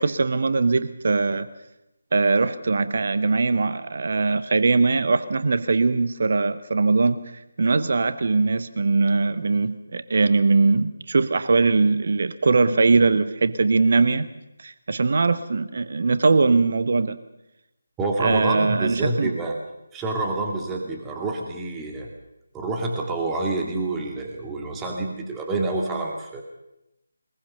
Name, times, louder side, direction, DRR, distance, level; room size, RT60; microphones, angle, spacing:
voice 1, 0.0-1.5 2.1-7.2 7.6-14.3 14.6-17.2 18.2-19.3, right 3 dB, 45° right, 13 dB, 1.1 m, -21 dB
voice 2, 18.0-19.6 19.9-22.1 22.5-26.4, right 2 dB, 10° right, 1 dB, 2.1 m, -27 dB
22.5 x 21.0 x 6.9 m, 0.87 s
figure-of-eight pair, 155°, 0 cm